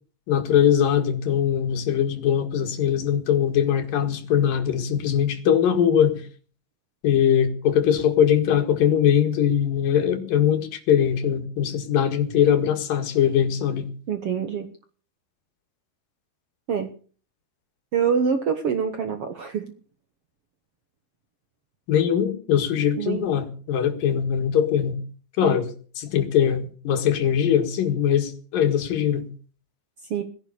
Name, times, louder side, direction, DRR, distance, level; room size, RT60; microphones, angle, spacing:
voice 1, 0.3-6.2 7.0-13.9 21.9-25.0 25.4-25.7 26.0-29.3, left 9 dB, 65° left, 8 dB, 3.4 m, -21 dB
voice 2, 14.1-14.7 16.7-16.9 17.9-19.6 23.0-23.3 25.4-25.5 30.1-30.2, right 7 dB, 65° right, 8 dB, 1.5 m, -25 dB
19.0 x 10.5 x 6.9 m, 0.41 s
omnidirectional pair, 4.4 m